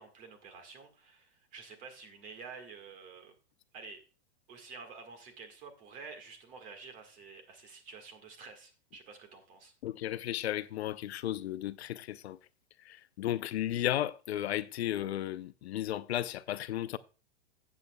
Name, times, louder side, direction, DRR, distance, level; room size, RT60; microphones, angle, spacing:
voice 1, 0.0-3.3 3.7-4.0 4.5-9.7, right 5 dB, 25° right, 1.6 m, -49 dB
voice 2, 9.8-12.4 12.8-17.0, left 12 dB, 70° left, 0.7 m, -34 dB
13.5 x 8.5 x 2.2 m
supercardioid pair, 165°, 34 cm